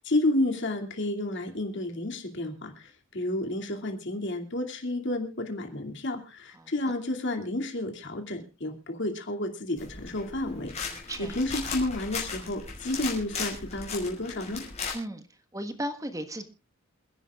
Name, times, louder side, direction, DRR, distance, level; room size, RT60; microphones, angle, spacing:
voice 1, 0.0-14.6, left 1 dB, 65° left, 4 dB, 2.5 m, -31 dB
sound 1, 9.8-14.9, left 5 dB, 35° left, 5.2 m, -37 dB
voice 2, 10.9-11.4 14.9-15.3 15.5-16.5, right 1 dB, 15° right, 8 dB, 1.4 m, -35 dB
28.0 x 10.5 x 2.4 m, 0.30 s
head